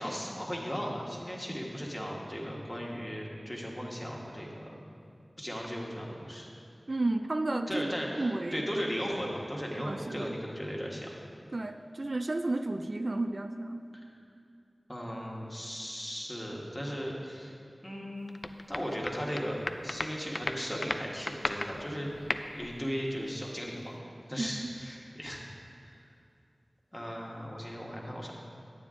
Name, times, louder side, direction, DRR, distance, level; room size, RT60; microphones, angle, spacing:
voice 1, 0.0-4.8 5.4-6.5 7.7-11.1 13.9-14.0 14.9-17.5 17.8-18.3 18.7-22.3 22.5-24.0 24.3-25.4 25.8-26.0 26.9-28.3, equal, 15° left, -2 dB, 1.5 m, -37 dB
voice 2, 6.9-8.6 9.8-10.4 11.5-13.8 24.4-24.7, right 2 dB, 50° right, 7 dB, 0.3 m, -32 dB
sound 1, 18.3-19.4 19.7-22.8, left 2 dB, 60° left, 0.4 m, -35 dB
9.4 x 9.2 x 3.7 m, 2.5 s
wide cardioid pair, 65°, 0 cm